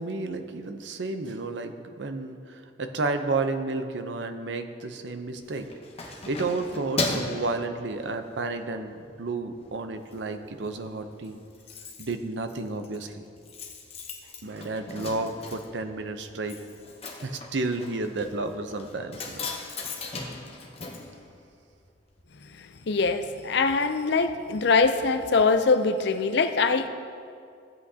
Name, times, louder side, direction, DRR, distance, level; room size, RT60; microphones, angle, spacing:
voice 1, 0.0-5.7 6.0-11.4 12.0-13.3 14.4-16.6 17.2-19.3, right 3 dB, 65° right, 7 dB, 0.7 m, -31 dB
Keys jangling, 5.4-8.4 8.9-9.1 9.5-10.2 10.4-10.5 10.8-10.9 11.1-21.9 22.2-22.3, left 3 dB, 30° left, 0.9 m, -37 dB
voice 2, 22.6-26.9, left 4 dB, 65° left, 9 dB, 0.5 m, -23 dB
15.5 x 8.1 x 2.8 m, 2.3 s
head